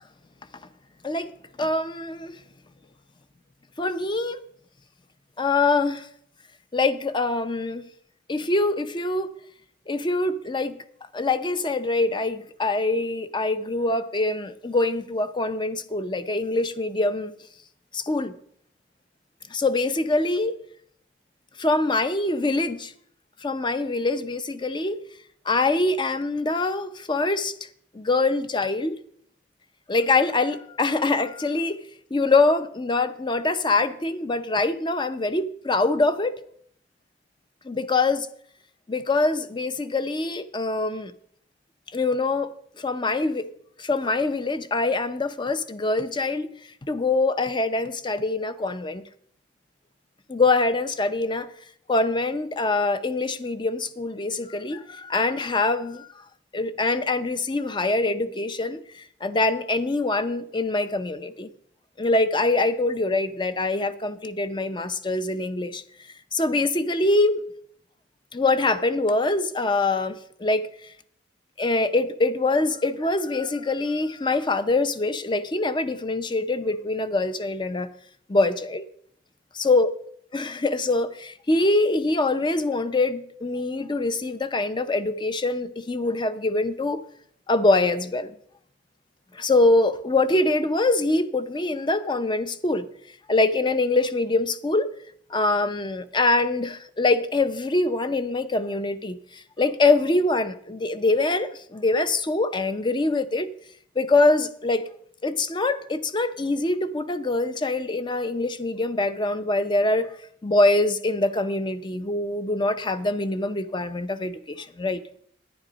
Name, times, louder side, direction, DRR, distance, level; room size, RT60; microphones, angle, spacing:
voice 1, 1.6-2.4 3.8-4.4 5.4-6.1 6.7-7.8 8.3-9.3 9.9-10.7 11.1-17.3 17.9-18.3 19.5-20.6 21.6-22.9 23.4-25.0 25.5-27.5 27.9-29.0 29.9-31.8 32.1-36.4 37.6-38.3 38.9-41.1 41.9-43.5 43.8-46.5 46.9-49.0 50.3-51.5 51.9-56.1 56.5-61.5 62.0-65.8 66.3-67.4 68.3-70.7 71.6-77.9 78.3-78.8 79.6-79.9 80.3-87.0 87.5-88.3 89.3-92.9 93.3-94.9 95.3-103.5 104.0-104.9 105.2-110.1 110.4-115.0, left 2 dB, 25° left, 0.6 m, -24 dB
10.5 x 10.0 x 5.1 m
head